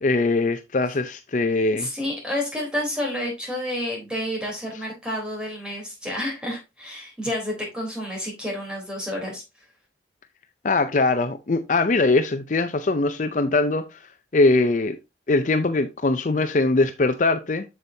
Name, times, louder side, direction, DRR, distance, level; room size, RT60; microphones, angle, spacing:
voice 1, 0.0-1.9 10.6-14.0 14.3-15.0 15.3-17.6, left 3 dB, 45° left, 0.5 m, -21 dB
voice 2, 1.7-9.4, left 1 dB, 5° right, 3.6 m, -30 dB
7.7 x 6.9 x 2.7 m
head